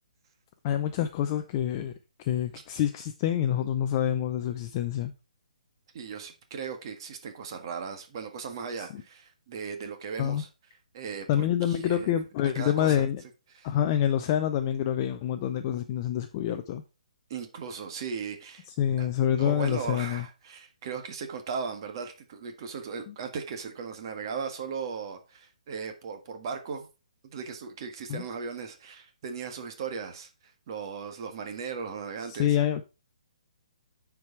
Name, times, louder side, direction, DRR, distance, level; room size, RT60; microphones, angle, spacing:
voice 1, 0.6-5.1 8.8-9.0 10.2-10.4 11.3-13.2 13.6-16.8 18.7-20.3 23.1-23.2 28.1-28.2 32.3-32.8, left 10 dB, 25° left, 0.5 m, -27 dB
voice 2, 5.9-10.5 10.9-12.2 12.5-13.1 13.5-13.7 17.3-18.7 19.0-19.1 19.4-26.9 27.2-32.6, right 6 dB, 35° right, 1.6 m, -37 dB
9.2 x 4.8 x 4.5 m
hypercardioid pair, 165°, 4 cm